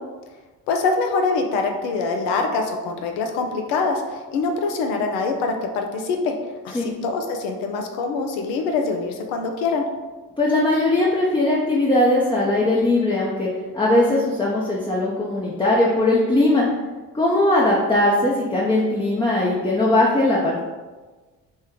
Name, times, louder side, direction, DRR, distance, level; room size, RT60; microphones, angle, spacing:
voice 1, 0.7-6.3 6.6-9.9, left 4 dB, 80° left, 3 dB, 0.6 m, -24 dB
voice 2, 10.4-13.5 13.7-16.7 17.1-20.5, left 1 dB, 10° left, -4 dB, 0.5 m, -19 dB
3.1 x 2.2 x 3.6 m, 1.3 s
hypercardioid pair, 40°, 44 cm